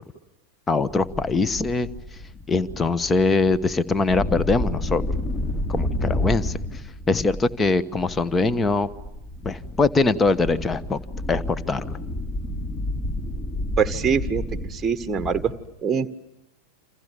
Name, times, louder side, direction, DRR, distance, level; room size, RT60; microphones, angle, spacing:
voice 1, 0.7-1.9 2.5-5.0 5.7-6.8 7.1-8.9 9.4-11.0 11.3-12.0, left 3 dB, 15° left, 16 dB, 1.2 m, -22 dB
sound 1, 0.9-15.5, left 1 dB, 35° left, 6.3 m, -31 dB
voice 2, 13.8-14.4 14.7-15.5 15.8-16.1, right 6 dB, 15° right, 10 dB, 1.4 m, -23 dB
28.5 x 27.5 x 6.9 m, 0.93 s
figure-of-eight pair, 90°, 0 cm